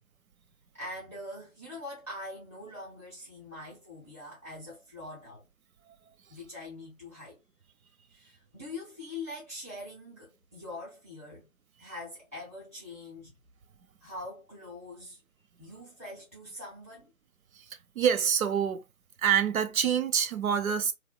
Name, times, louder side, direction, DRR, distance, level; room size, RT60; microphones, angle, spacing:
voice 1, 0.7-5.4 6.3-7.4 8.1-11.5 11.8-13.4 14.0-15.2 15.6-17.1, left 2 dB, 10° left, 0.5 m, -43 dB
voice 2, 17.9-18.8 19.2-20.9, right 8 dB, 75° right, 0.6 m, -26 dB
2.6 x 2.1 x 2.3 m
figure-of-eight pair, 150°, 42 cm